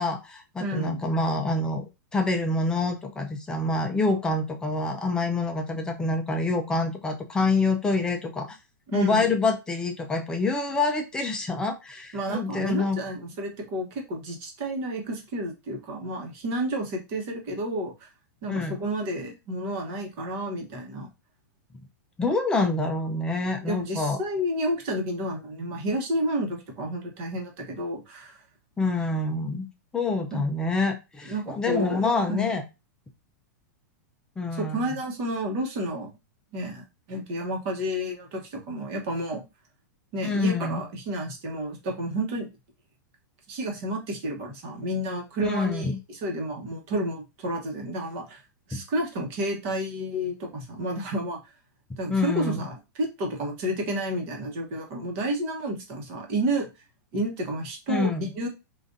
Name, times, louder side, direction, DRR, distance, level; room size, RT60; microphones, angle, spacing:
voice 1, 0.0-1.8 2.1-8.6 8.9-13.0 18.5-18.8 22.2-24.2 28.8-29.7 29.9-32.6 34.4-34.9 40.2-40.8 45.4-46.0 48.7-48.8 52.1-52.6 57.9-58.3, left 3 dB, 5° left, 4 dB, 0.4 m, -26 dB
voice 2, 0.6-1.1 8.9-9.3 12.1-18.1 18.4-21.1 23.7-28.4 30.3-30.4 31.2-32.0 32.3-32.5 34.6-36.1 36.5-39.4 40.1-42.5 43.5-48.4 48.7-51.4 52.0-56.7 57.1-58.5, right 1 dB, 40° right, 2 dB, 1.1 m, -31 dB
3.6 x 2.5 x 2.6 m, 0.25 s
supercardioid pair, 155°, 10 cm